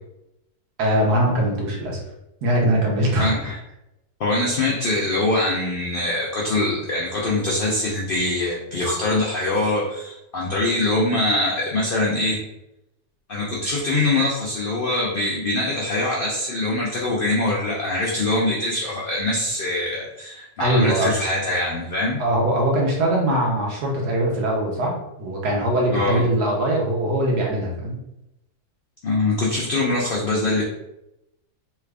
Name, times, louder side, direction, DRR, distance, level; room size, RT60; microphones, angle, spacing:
voice 1, 0.8-2.0 2.4-3.5 20.6-21.1 22.2-28.0, right 1 dB, 85° right, -2 dB, 1.4 m, -21 dB
voice 2, 3.2-3.6 4.2-12.4 13.3-22.2 25.9-26.2 29.0-30.6, left 2 dB, 75° left, -3 dB, 0.5 m, -23 dB
3.3 x 2.4 x 3.3 m, 0.89 s
omnidirectional pair, 1.6 m